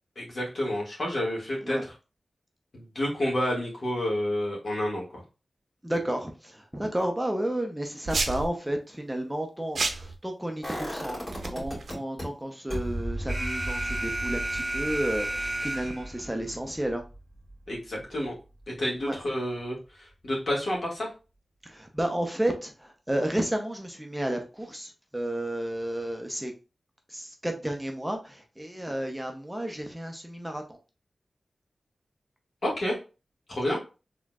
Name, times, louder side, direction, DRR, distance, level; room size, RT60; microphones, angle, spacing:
voice 1, 0.2-1.9 2.7-5.2 17.7-18.3 18.7-21.1 32.6-33.0 33.5-33.8, left 1 dB, 60° left, -3 dB, 2.0 m, -29 dB
voice 2, 5.8-17.0 19.0-19.2 21.6-26.5 27.1-30.6 33.7-33.8, right 1 dB, 10° right, 3 dB, 0.6 m, -32 dB
sound 1, 8.1-8.5 9.7-10.1 11.3-11.9, right 3 dB, 75° right, 0.6 m, -30 dB
sound 2, 10.6-12.2 12.7-18.5 18.9-19.0, right 1 dB, 30° left, 2.4 m, -37 dB
Alarm, 13.3-16.3, right 1 dB, 35° right, 1.8 m, -32 dB
4.2 x 3.6 x 2.4 m, 0.31 s
wide cardioid pair, 85°, 0 cm